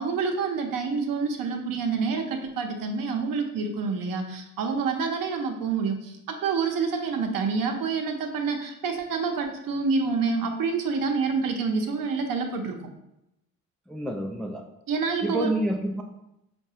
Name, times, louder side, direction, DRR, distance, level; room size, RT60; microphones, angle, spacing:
voice 1, 0.0-12.8 14.9-15.5, right 5 dB, 60° right, 4 dB, 0.7 m, -27 dB
voice 2, 13.9-14.7 15.2-16.0, right 1 dB, ahead, 2 dB, 0.3 m, -28 dB
4.5 x 2.3 x 2.8 m, 0.85 s
hypercardioid pair, 60°, 39 cm